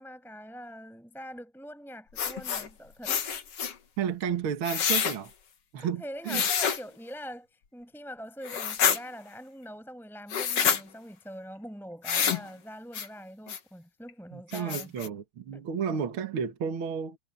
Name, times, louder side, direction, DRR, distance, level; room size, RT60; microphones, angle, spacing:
voice 1, 0.0-3.1 5.8-14.9 15.5-15.6, equal, ahead, 5.9 m, -43 dB
sound 1, 2.2-2.7 3.0-3.7 4.6-5.2 6.3-6.8 8.4-9.0 10.3-10.8 12.0-12.4 12.9-13.1 13.5-13.6 14.1-14.2 14.5-15.1, left 7 dB, 50° left, 2.0 m, -27 dB
voice 2, 4.0-5.3 5.7-6.4 14.3-17.2, right 7 dB, 55° right, 1.5 m, -32 dB
omnidirectional pair, 4.8 m